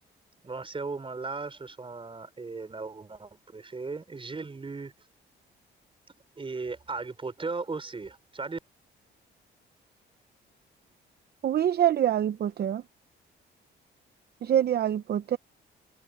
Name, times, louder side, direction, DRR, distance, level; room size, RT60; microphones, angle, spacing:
voice 1, 0.4-4.9 6.4-8.6, right 4 dB, 25° right, 4.8 m, -37 dB
voice 2, 11.4-12.8 14.4-15.4, right 10 dB, 55° right, 0.7 m, -25 dB
cardioid pair, 90°, 20 cm